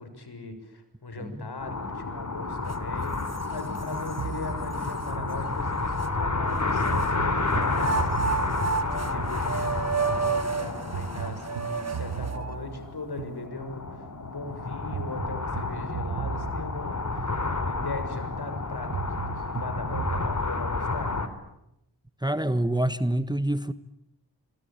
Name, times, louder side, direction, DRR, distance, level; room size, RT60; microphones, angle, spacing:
voice 1, 0.0-8.5 8.7-21.1, left 3 dB, 65° left, 8 dB, 6.8 m, -39 dB
voice 2, 1.2-1.5 3.7-3.8 22.2-23.7, right 1 dB, 10° right, 13 dB, 1.4 m, -27 dB
sound 1, 1.6-21.3, left 3 dB, 40° left, 3.8 m, -30 dB
sound 2, 2.7-2.8 3.3-4.2 4.8-4.9 6.0-7.2 7.7-12.6, right 5 dB, 35° right, 2.4 m, -31 dB
sound 3, 4.2-6.1 6.9-10.0 10.9-14.0 14.9-18.0 18.9-20.3, right 8 dB, 80° right, 1.2 m, -38 dB
25.5 x 25.0 x 9.0 m, 0.86 s
cardioid pair, 45°, 42 cm